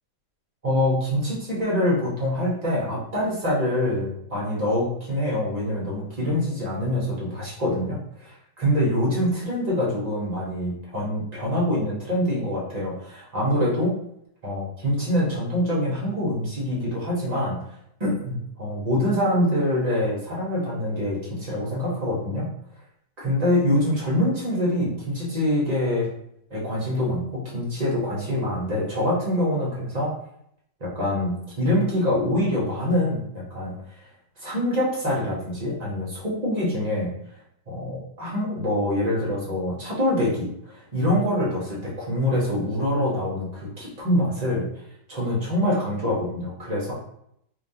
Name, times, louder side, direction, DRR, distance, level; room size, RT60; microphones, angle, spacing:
voice 1, 0.6-13.9 14.4-17.6 18.0-22.5 23.2-26.1 26.5-30.1 30.8-33.8 34.4-37.1 37.7-44.6 45.1-46.9, left 1 dB, 25° right, -6 dB, 1.1 m, -25 dB
3.4 x 3.1 x 2.7 m, 0.73 s
omnidirectional pair, 1.8 m